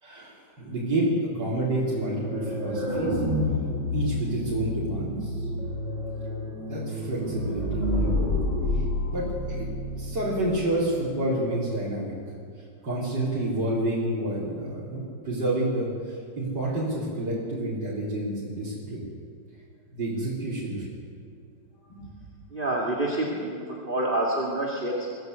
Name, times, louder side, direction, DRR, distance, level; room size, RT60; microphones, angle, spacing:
voice 1, 0.0-3.2 3.9-5.5 6.6-8.1 8.7-9.7 10.0-12.1 12.8-19.1 19.9-20.9 21.9-22.0, right 1 dB, 70° right, -8 dB, 4.7 m, -29 dB
sound 1, 1.8-10.6, left 1 dB, 40° left, 8.2 m, -29 dB
voice 2, 22.5-23.6 23.9-25.2, right 1 dB, 30° right, -2 dB, 2.5 m, -27 dB
23.0 x 15.5 x 8.1 m, 2.4 s
omnidirectional pair, 2.0 m